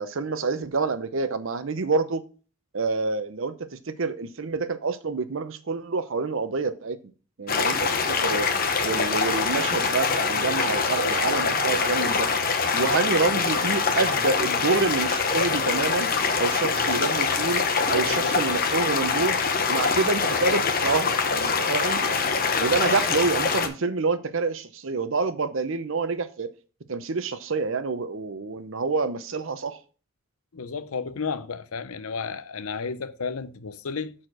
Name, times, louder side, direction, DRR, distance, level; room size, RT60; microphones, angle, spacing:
voice 1, 0.0-2.2 2.7-7.0 7.4-16.1 16.4-17.6 17.9-22.0 22.6-26.5 26.9-29.8, right 4 dB, 60° right, 0.7 m, -27 dB
sound 1, 7.5-23.7, left 5 dB, 40° left, 0.9 m, -24 dB
voice 2, 16.7-17.1 17.9-18.4 30.5-34.1, left 5 dB, 75° left, 0.7 m, -33 dB
6.7 x 4.4 x 6.0 m
head